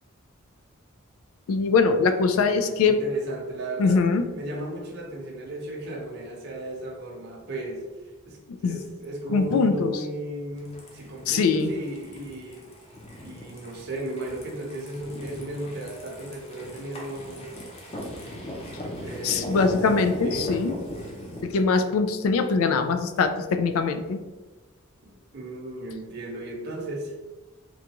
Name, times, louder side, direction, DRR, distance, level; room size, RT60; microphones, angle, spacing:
voice 1, 1.5-3.0 3.8-4.2 8.5-8.8 9.3-9.9 11.3-11.7 19.2-20.8 21.4-24.2, left 4 dB, 90° left, 8 dB, 0.3 m, -22 dB
voice 2, 2.3-4.0 4.3-7.8 8.2-12.7 13.2-17.6 19.0-19.6 20.2-20.5 25.0-27.1, right 1 dB, 55° right, -2 dB, 0.7 m, -35 dB
sound 1, 10.6-21.4, left 1 dB, 30° left, 0.6 m, -38 dB
3.8 x 2.3 x 2.9 m, 1.2 s
head